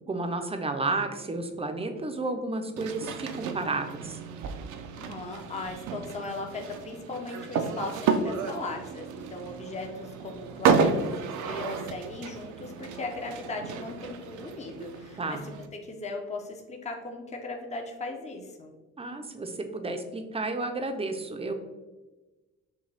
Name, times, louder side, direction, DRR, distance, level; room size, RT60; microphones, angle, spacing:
voice 1, 0.1-4.2 15.2-15.4 19.0-21.5, right 2 dB, 20° right, 6 dB, 0.5 m, -32 dB
sound 1, 2.8-15.7, right 5 dB, 75° right, 0.5 m, -31 dB
voice 2, 5.0-18.7, left 3 dB, 20° left, 2 dB, 0.7 m, -38 dB
6.3 x 2.2 x 3.3 m, 1.2 s
cardioid pair, 90°, 30 cm